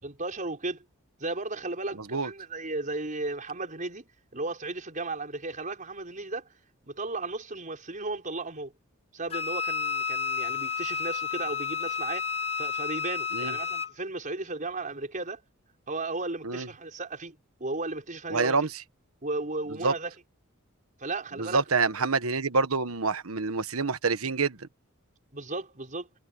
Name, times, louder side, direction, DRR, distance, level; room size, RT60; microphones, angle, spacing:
voice 1, 0.0-0.8 1.2-4.1 4.3-6.5 6.8-8.7 9.1-12.3 12.6-15.4 15.9-18.7 19.2-20.1 21.0-21.9 25.3-26.1, right 2 dB, 40° right, 5.4 m, -35 dB
Wind instrument woodwind instrument, 9.3-13.9, left 6 dB, 30° left, 1.5 m, -31 dB
voice 2, 18.3-18.7 19.8-19.9 21.4-24.7, right 4 dB, 85° right, 1.3 m, -27 dB
head